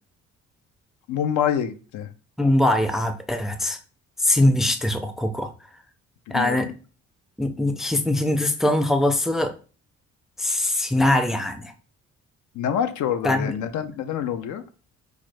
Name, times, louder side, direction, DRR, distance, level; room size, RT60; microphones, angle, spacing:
voice 1, 1.1-2.1 6.3-6.7 12.5-14.6, left 9 dB, 80° left, 9 dB, 0.6 m, -26 dB
voice 2, 2.4-3.8 4.2-5.5 6.3-6.7 7.4-9.5 10.4-11.7 13.2-13.5, left 1 dB, ahead, 8 dB, 0.4 m, -22 dB
4.9 x 2.0 x 3.2 m, 0.36 s
cardioid pair, 90°, 30 cm